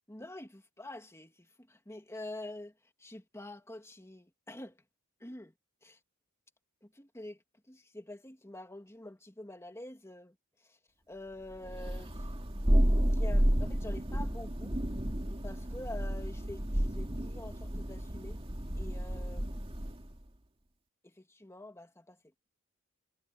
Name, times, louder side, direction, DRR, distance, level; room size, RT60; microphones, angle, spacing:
voice 1, 0.1-2.7 3.0-4.8 5.2-5.5 5.8-6.0 6.8-7.4 7.7-10.8 11.1-12.3 13.1-14.8 15.4-18.4 18.8-19.7 21.0-22.2, left 1 dB, 15° left, 2.4 m, -47 dB
Thunder, 11.7-20.1, equal, 25° right, 2.2 m, -31 dB
head